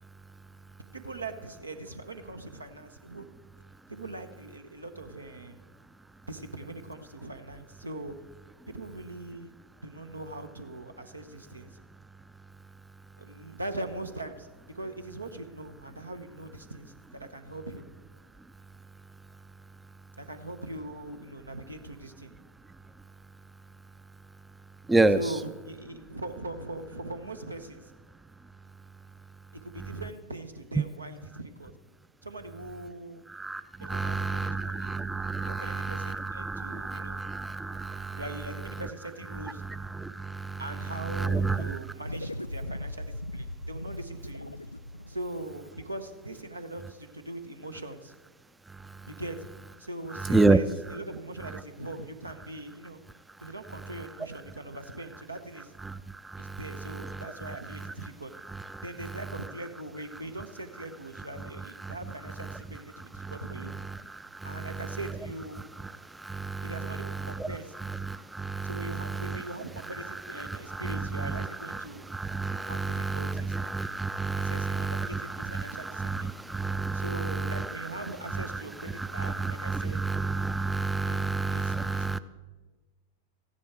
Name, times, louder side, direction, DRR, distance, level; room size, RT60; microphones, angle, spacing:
voice 1, 0.9-3.3 3.9-5.6 6.3-8.1 8.7-9.5 9.8-11.8 13.2-17.9 20.2-22.3 25.1-27.9 29.6-31.7 32.2-33.3 33.8-35.0 35.5-37.3 38.0-39.6 40.6-44.5 45.1-48.1 49.1-49.5 49.8-53.0 53.4-55.8 56.4-58.3 58.8-63.7 64.4-65.7 66.6-67.7 68.6-72.1 72.6-73.5 74.4-76.3 76.9-80.0 81.0-82.2, right 2 dB, 80° right, 8 dB, 0.9 m, -41 dB
voice 2, 33.3-38.2 39.6-40.6 41.1-41.8 50.3-50.6 55.9-56.0 56.2-56.6 61.8-61.9 63.2-63.3 63.8-64.6 66.1-66.7 68.0-69.4 70.4-71.8 72.1-77.7 78.3-78.4 79.0-82.2, right 3 dB, 10° right, 13 dB, 0.4 m, -30 dB
sound 1, 42.0-46.7, left 1 dB, 85° left, 0.3 m, -39 dB
14.5 x 10.0 x 4.6 m, 1.2 s
figure-of-eight pair, 90°, 0 cm